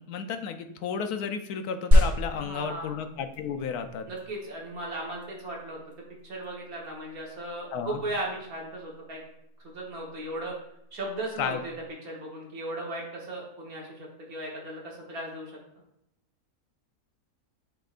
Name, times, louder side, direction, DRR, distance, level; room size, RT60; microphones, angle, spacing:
voice 1, 0.0-4.1 7.7-8.0 11.4-11.6, left 6 dB, 75° left, 7 dB, 1.1 m, -33 dB
sound 1, 1.9-11.9, left 1 dB, 35° right, 2.0 m, -30 dB
voice 2, 2.3-2.9 4.1-5.8 6.2-9.2 9.6-10.5 10.9-11.7 12.0-15.5, right 1 dB, 65° right, -2 dB, 1.7 m, -36 dB
10.5 x 3.8 x 2.4 m, 0.78 s
omnidirectional pair, 1.7 m